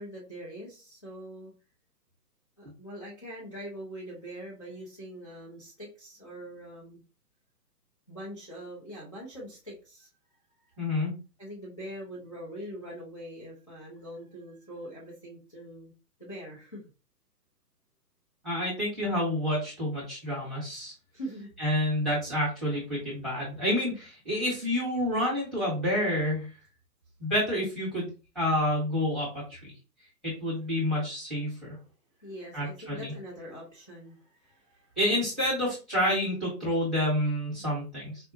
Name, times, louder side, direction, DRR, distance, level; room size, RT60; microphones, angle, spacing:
voice 1, 0.0-1.5 2.6-7.0 8.1-10.1 11.4-15.9 16.2-16.8 21.1-21.5 31.7-31.9 32.2-35.0, equal, 20° left, -6 dB, 0.4 m, -43 dB
voice 2, 10.8-11.1 18.4-20.9 21.6-26.5 27.2-28.1 28.3-29.7 30.2-31.7 32.5-33.1 35.0-38.3, left 1 dB, ahead, -7 dB, 1.0 m, -29 dB
4.4 x 2.2 x 2.6 m, 0.31 s
hypercardioid pair, 155°, 48 cm